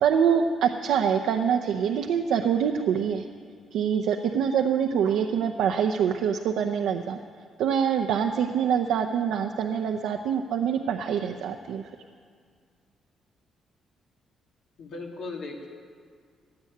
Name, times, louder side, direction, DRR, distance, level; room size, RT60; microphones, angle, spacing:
voice 1, 0.0-3.2 3.7-7.2 7.6-11.8, right 7 dB, 85° right, 4 dB, 0.7 m, -25 dB
voice 2, 14.8-15.7, left 3 dB, 80° left, 0 dB, 2.5 m, -37 dB
16.5 x 9.0 x 9.4 m, 2.1 s
cardioid pair, 90°, 0 cm